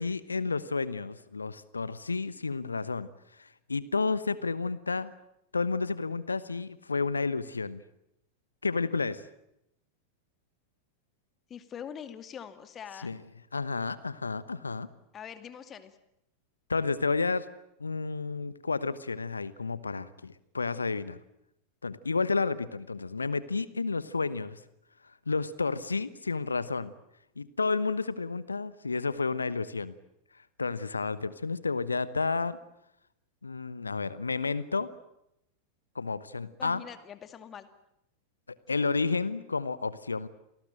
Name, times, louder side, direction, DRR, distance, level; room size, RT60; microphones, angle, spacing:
voice 1, 0.0-3.1 3.4-5.1 5.5-7.8 8.6-9.3 13.0-13.2 13.5-14.9 16.7-17.5 17.8-21.2 21.8-24.6 25.3-26.9 27.4-29.9 30.6-32.6 33.4-34.9 35.9-36.8 38.5-40.3, left 4 dB, 75° left, 17 dB, 1.0 m, -31 dB
voice 2, 11.5-13.1 15.1-16.0 36.6-37.7, left 8 dB, 25° left, 10 dB, 2.3 m, -43 dB
28.0 x 19.5 x 9.0 m, 0.82 s
figure-of-eight pair, 90°, 0 cm